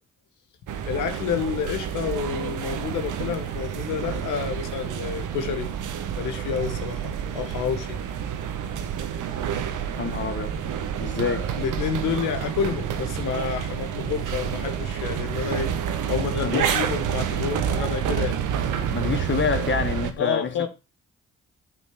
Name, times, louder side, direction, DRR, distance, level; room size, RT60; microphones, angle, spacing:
sound 1, 0.7-20.1, right 8 dB, 75° right, 1.1 m, -29 dB
voice 1, 0.8-5.7 6.2-8.0 11.6-15.7 16.1-18.4 20.2-20.7, left 7 dB, 80° left, 1.1 m, -29 dB
voice 2, 10.0-10.6 11.0-11.5 16.4-16.8 18.9-20.5, left 5 dB, 40° left, 1.5 m, -27 dB
9.3 x 4.2 x 5.8 m
hypercardioid pair, 40°, 31 cm